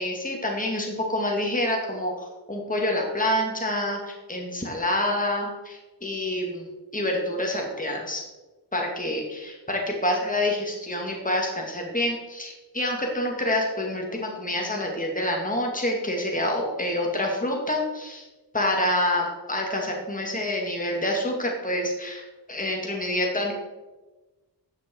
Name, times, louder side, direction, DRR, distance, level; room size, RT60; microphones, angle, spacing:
voice 1, 0.0-6.7 6.9-8.2 8.7-18.3 18.5-23.5, left 1 dB, 20° left, 0 dB, 2.1 m, -27 dB
13.0 x 7.7 x 4.5 m, 1.2 s
wide cardioid pair, 65°, 43 cm